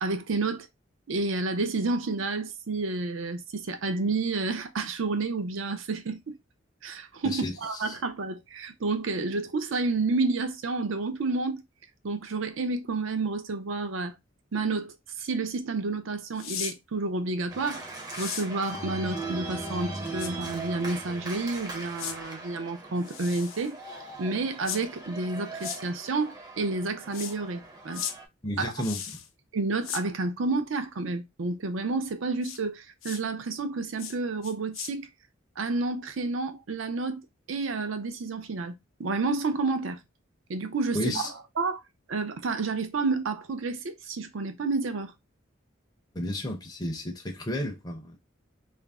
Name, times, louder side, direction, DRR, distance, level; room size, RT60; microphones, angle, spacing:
voice 1, 0.0-0.7 1.1-6.4 6.8-11.6 12.0-14.2 14.5-17.8 18.2-23.7 24.2-28.1 28.6-28.7 29.5-35.1 35.6-37.2 37.5-40.0 40.5-41.2 41.6-41.8 42.1-45.1, right 3 dB, 70° right, 0.5 m, -30 dB
sound 1, 16.4-16.7 18.1-18.5 20.2-20.3 22.0-22.2 23.0-23.7 24.6-24.8 25.6-25.8 27.1-27.3 27.9-28.1 28.8-29.3 29.8-30.0 32.4-32.6 33.0-33.2 34.0-34.2 34.4-34.9, left 9 dB, 75° left, 0.5 m, -36 dB
Organ, 17.5-28.3, right 2 dB, 20° right, 0.6 m, -39 dB
voice 2, 28.4-29.2 40.9-41.3 46.1-48.2, left 1 dB, 20° left, 0.5 m, -32 dB
2.5 x 2.0 x 3.4 m
head